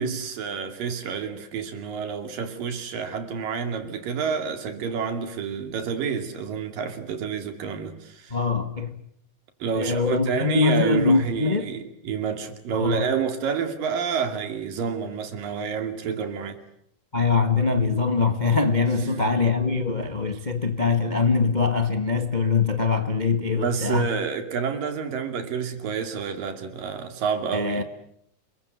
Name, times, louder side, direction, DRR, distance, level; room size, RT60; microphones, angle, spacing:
voice 1, 0.0-8.4 9.6-16.6 19.0-19.3 23.5-27.8, right 6 dB, 80° right, 4.2 m, -29 dB
voice 2, 8.3-8.9 9.7-11.7 12.7-13.1 17.1-24.1 27.5-27.8, left 4 dB, 40° left, 0.6 m, -23 dB
29.0 x 22.0 x 8.2 m
omnidirectional pair, 3.9 m